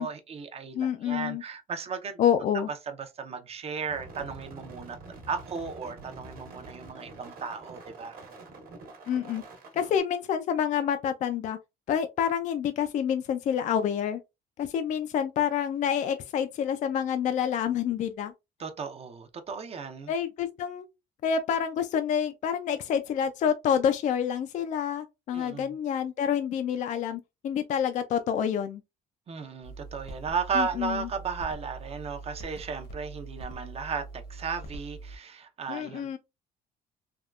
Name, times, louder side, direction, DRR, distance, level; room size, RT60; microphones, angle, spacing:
voice 1, 0.0-2.2 2.5-5.0 5.3-8.2 18.6-20.1 25.3-25.8 29.3-36.2, right 5 dB, 35° right, 0.6 m, -35 dB
voice 2, 0.7-1.4 2.2-2.7 9.1-9.4 9.7-11.6 11.9-14.2 14.6-18.3 20.1-20.9 21.2-28.8 30.6-31.1 35.7-36.2, left 8 dB, 45° left, 0.4 m, -28 dB
sound 1, 3.9-10.0, right 2 dB, 60° right, 1.1 m, -46 dB
sound 2, 29.6-35.2, right 3 dB, 70° left, 1.0 m, -43 dB
3.4 x 2.2 x 2.3 m
cardioid pair, 110°, 17 cm